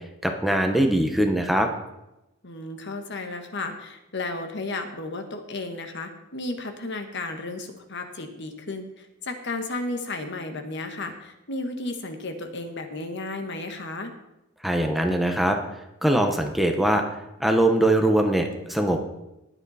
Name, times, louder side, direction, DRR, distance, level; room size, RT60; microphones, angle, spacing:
voice 1, 0.2-1.7 14.6-15.6 16.0-17.0 17.4-19.0, right 1 dB, ahead, 3 dB, 1.1 m, -22 dB
voice 2, 2.4-14.1, left 2 dB, 55° left, 6 dB, 1.5 m, -33 dB
19.5 x 8.0 x 4.3 m, 0.92 s
head